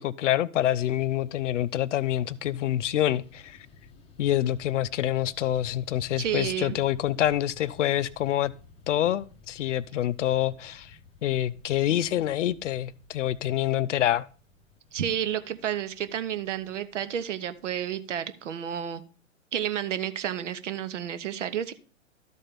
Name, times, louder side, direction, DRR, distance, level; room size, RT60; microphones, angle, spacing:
voice 1, 0.0-3.6 4.2-8.5 8.9-11.0 11.2-14.2, left 12 dB, 65° left, 0.6 m, -26 dB
Fixed-wing aircraft airplane, 0.7-18.1, left 4 dB, 15° left, 0.8 m, -54 dB
voice 2, 6.2-6.8 14.9-19.0 19.5-21.7, right 10 dB, 60° right, 1.0 m, -31 dB
12.5 x 4.3 x 5.2 m
hypercardioid pair, 120°, 40 cm